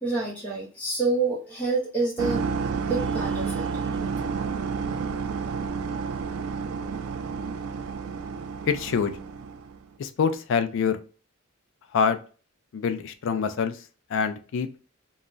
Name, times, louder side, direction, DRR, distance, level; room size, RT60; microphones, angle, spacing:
voice 1, 0.0-2.5 2.9-4.2, right 3 dB, 5° left, -4 dB, 0.5 m, -28 dB
sound 1, 2.2-9.8, right 5 dB, 75° right, 0.3 m, -30 dB
voice 2, 8.7-9.1 10.0-11.0 11.9-12.2 12.7-13.8 14.1-14.7, left 6 dB, 60° left, 10 dB, 0.4 m, -25 dB
2.3 x 2.0 x 3.7 m, 0.37 s
head